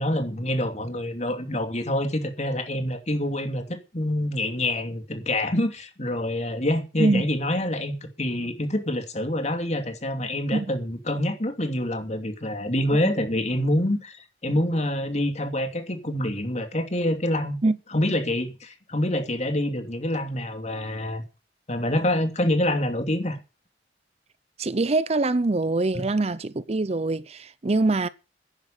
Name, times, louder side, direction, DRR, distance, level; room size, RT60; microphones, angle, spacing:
voice 1, 0.0-17.6 17.9-21.2 21.7-23.4 25.9-26.1, left 1 dB, 40° left, 2.8 m, -26 dB
voice 2, 24.6-28.1, right 2 dB, 35° right, 0.6 m, -24 dB
11.0 x 10.5 x 7.5 m
head